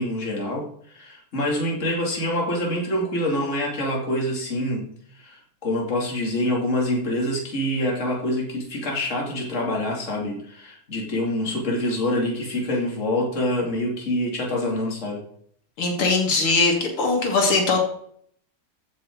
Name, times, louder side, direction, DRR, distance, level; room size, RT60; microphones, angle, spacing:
voice 1, 0.0-4.9 5.1-15.2, left 1 dB, 35° left, -1 dB, 3.0 m, -26 dB
voice 2, 15.8-17.8, left 3 dB, 80° left, 2 dB, 3.2 m, -21 dB
15.0 x 7.4 x 4.7 m, 0.64 s
omnidirectional pair, 2.4 m